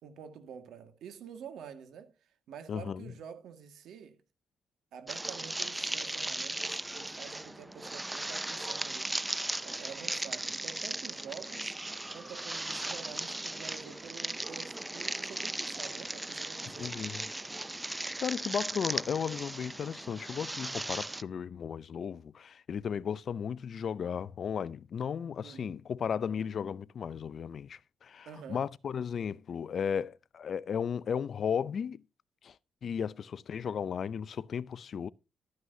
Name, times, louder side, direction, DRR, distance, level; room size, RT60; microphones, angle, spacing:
voice 1, 0.0-2.1 2.5-4.2 4.9-9.1 9.6-11.7 12.1-17.1 25.4-25.8 28.3-28.7, right 7 dB, 80° right, 1.9 m, -48 dB
voice 2, 2.7-3.1 16.8-17.2 18.2-32.0 32.4-32.5 32.8-35.1, left 7 dB, 55° left, 0.5 m, -35 dB
sound 1, 5.1-21.2, right 2 dB, 15° right, 0.4 m, -37 dB
12.5 x 9.5 x 2.7 m
cardioid pair, 90°, 0 cm